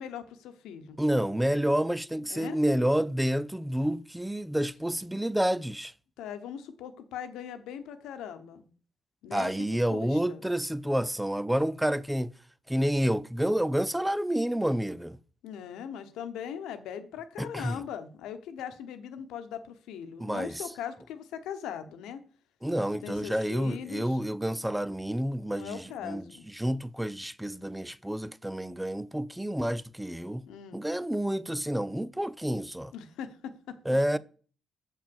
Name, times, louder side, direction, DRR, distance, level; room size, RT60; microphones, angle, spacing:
voice 1, 0.0-1.0 2.3-2.6 6.2-8.6 9.2-10.4 15.4-22.2 23.0-24.2 25.4-26.4 30.4-30.8 32.9-33.8, left 8 dB, 90° left, 1.1 m, -40 dB
voice 2, 1.0-5.9 9.3-12.3 12.7-15.2 17.4-17.8 20.2-20.6 22.6-26.2 26.5-30.4 30.7-32.9 33.9-34.2, equal, 5° right, 0.5 m, -29 dB
7.3 x 5.7 x 7.1 m
cardioid pair, 90°, 0 cm